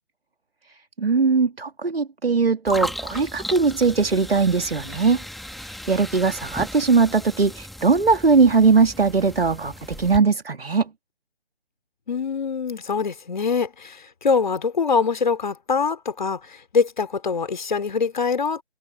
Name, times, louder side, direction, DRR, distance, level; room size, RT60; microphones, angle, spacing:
voice 1, 1.0-5.2 5.6-10.9, right 4 dB, 70° right, 2.4 m, -20 dB
sound 1, 2.7-10.2, left 1 dB, ahead, 1.6 m, -36 dB
voice 2, 12.1-18.6, left 5 dB, 50° left, 3.5 m, -24 dB
figure-of-eight pair, 155°, 31 cm